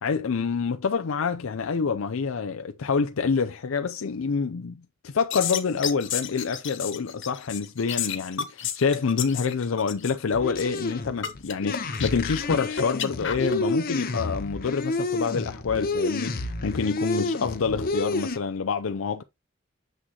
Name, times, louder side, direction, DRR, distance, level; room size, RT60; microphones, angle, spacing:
voice 1, 0.0-19.2, left 5 dB, 80° left, 0.5 m, -27 dB
sound 1, 5.2-13.5, left 8 dB, 65° left, 1.4 m, -31 dB
sound 2, 10.3-18.4, left 2 dB, 45° left, 0.8 m, -30 dB
7.7 x 6.2 x 2.9 m
head